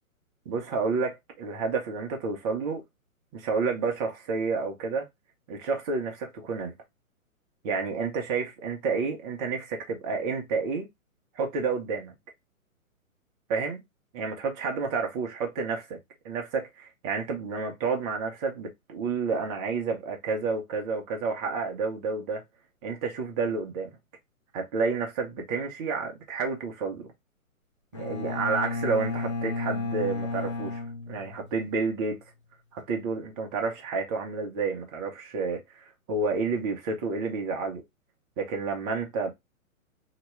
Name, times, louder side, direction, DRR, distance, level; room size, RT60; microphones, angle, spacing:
voice 1, 0.5-2.8 3.3-5.1 5.5-6.7 7.6-10.9 11.4-12.1 13.5-13.8 14.1-16.0 16.2-22.4 22.8-24.0 24.5-27.1 27.9-32.2 32.7-37.8 38.4-39.3, right 4 dB, 20° right, 0.6 m, -30 dB
Bowed string instrument, 27.9-31.8, left 3 dB, 25° left, 0.4 m, -33 dB
2.9 x 2.8 x 3.0 m
figure-of-eight pair, 130°, 42 cm